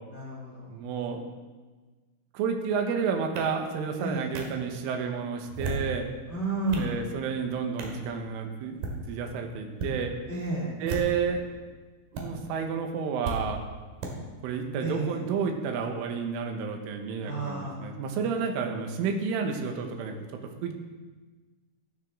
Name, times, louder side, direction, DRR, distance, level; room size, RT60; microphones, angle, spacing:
voice 1, 0.1-0.7 4.0-4.3 6.3-6.9 10.3-10.7 14.8-15.2 17.2-17.9, right 2 dB, 40° left, -3 dB, 0.9 m, -31 dB
voice 2, 0.7-1.2 2.3-6.1 6.8-8.8 9.1-10.1 10.8-11.5 12.1-13.6 14.4-20.2 20.6-20.7, right 6 dB, 90° right, 3 dB, 3.7 m, -30 dB
sound 1, 3.4-3.5 4.3-4.4 5.4-5.9 6.4-6.9 7.8-8.0 8.7-9.0 9.7-9.9 10.8-11.3 12.1-12.2 13.2-13.4 14.0-14.1, right 3 dB, 55° right, 3.2 m, -34 dB
15.5 x 12.5 x 3.8 m, 1.3 s
omnidirectional pair, 5.6 m